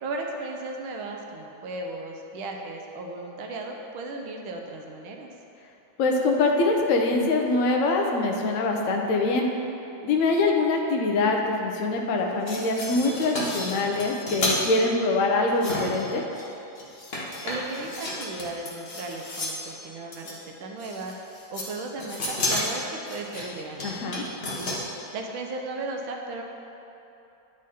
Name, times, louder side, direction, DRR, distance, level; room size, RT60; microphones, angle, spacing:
voice 1, 0.0-5.3 17.4-21.1 21.5-23.8 24.4-24.8 25.1-26.4, right 2 dB, 80° right, 2 dB, 1.6 m, -36 dB
voice 2, 6.0-9.5 10.0-16.2 23.8-24.2, left 3 dB, 60° left, 1 dB, 0.8 m, -24 dB
sound 1, 12.3-14.6 15.5-16.5 16.8-19.7 20.1-20.4 20.8-21.7 22.0-24.8, left 1 dB, 35° left, 1.2 m, -32 dB
10.5 x 4.9 x 4.2 m, 2.9 s
omnidirectional pair, 2.2 m